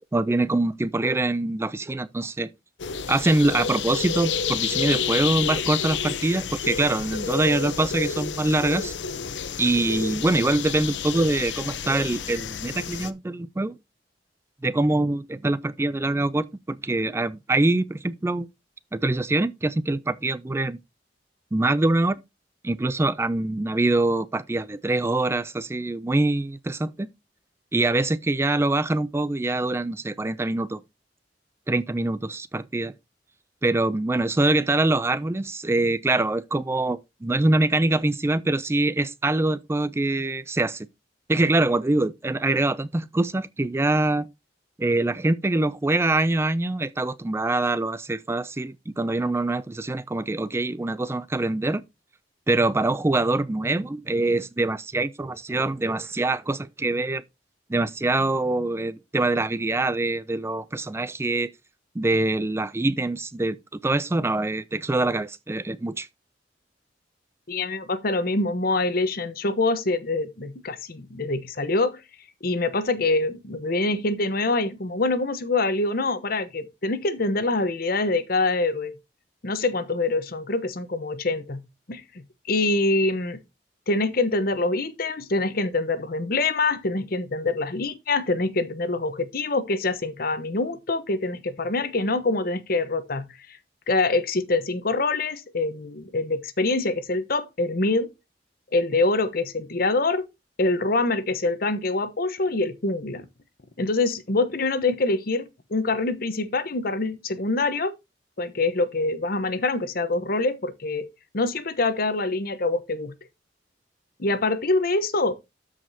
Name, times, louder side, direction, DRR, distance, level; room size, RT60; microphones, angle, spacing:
voice 1, 0.1-2.5 3.1-8.9 9.6-13.8 14.6-18.5 18.9-20.8 21.5-22.2 22.6-27.1 27.7-30.8 31.7-32.9 33.6-40.9 41.3-44.3 44.8-51.8 52.5-57.2 57.7-61.5 62.0-66.1, right 2 dB, 15° right, 0.4 m, -24 dB
sound 1, 2.8-13.1, left 7 dB, 80° left, 0.7 m, -30 dB
voice 2, 67.5-72.0 72.4-78.9 79.4-82.0 82.5-83.4 83.9-93.3 93.9-98.1 98.7-100.2 100.6-103.2 103.8-107.9 108.4-111.1 111.3-113.1 114.2-115.3, left 2 dB, 55° left, 0.9 m, -25 dB
13.0 x 4.9 x 2.7 m
head